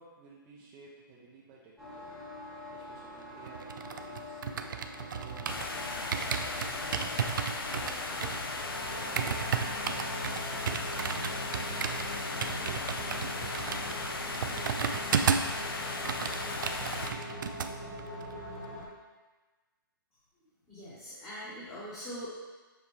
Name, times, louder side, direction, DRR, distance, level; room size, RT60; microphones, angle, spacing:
voice 1, 0.0-6.2 6.8-8.3 8.8-10.7 11.1-11.7 12.3-15.7, right 3 dB, 20° right, -5 dB, 0.6 m, -53 dB
sound 1, 1.8-18.9, equal, ahead, 1.2 m, -43 dB
sound 2, 3.5-5.7 6.1-15.6 15.9-17.7 18.0-18.3, right 6 dB, 60° right, 0.5 m, -33 dB
sound 3, 5.5-17.1, left 3 dB, 80° left, 0.8 m, -37 dB
voice 2, 20.7-22.3, equal, 20° left, -10 dB, 1.4 m, -42 dB
7.3 x 4.4 x 3.2 m, 1.2 s
hypercardioid pair, 155°, 12 cm